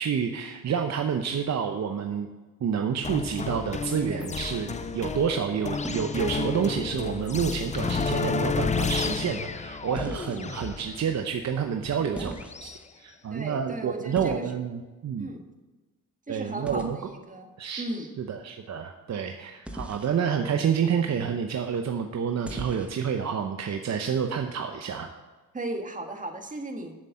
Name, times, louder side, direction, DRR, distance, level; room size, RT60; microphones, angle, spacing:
voice 1, 0.0-2.3 2.6-15.3 16.3-17.0 17.6-17.8 18.2-25.1, right 7 dB, 50° right, 5 dB, 0.8 m, -29 dB
sound 1, 3.0-12.8, left 5 dB, 20° left, 0.5 m, -31 dB
sound 2, 4.0-4.6 5.8-6.2 7.9-8.3 9.9-10.7 12.1-12.9 14.1-14.5 16.7-16.9 19.6-20.2 22.4-23.0, right 1 dB, 5° right, 1.2 m, -38 dB
voice 2, 13.3-14.4 15.2-15.5 16.3-17.5 17.8-18.1 25.5-26.9, right 2 dB, 20° right, 4 dB, 1.6 m, -36 dB
7.5 x 6.7 x 7.5 m, 1.2 s
cardioid pair, 80°, 35 cm